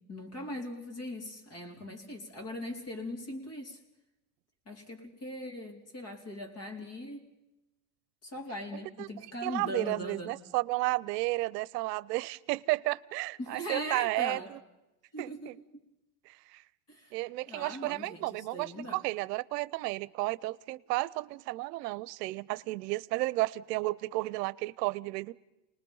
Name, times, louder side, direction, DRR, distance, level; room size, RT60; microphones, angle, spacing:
voice 1, 0.1-3.8 4.7-7.3 8.2-10.3 13.4-14.5 15.1-15.5 16.9-17.1 17.5-19.0, left 1 dB, 30° left, 3 dB, 4.1 m, -40 dB
voice 2, 9.4-14.4 15.2-15.5 16.3-16.6 17.1-25.3, right 20 dB, 90° right, 18 dB, 0.7 m, -32 dB
28.5 x 20.0 x 5.5 m, 0.94 s
supercardioid pair, 135°, 47 cm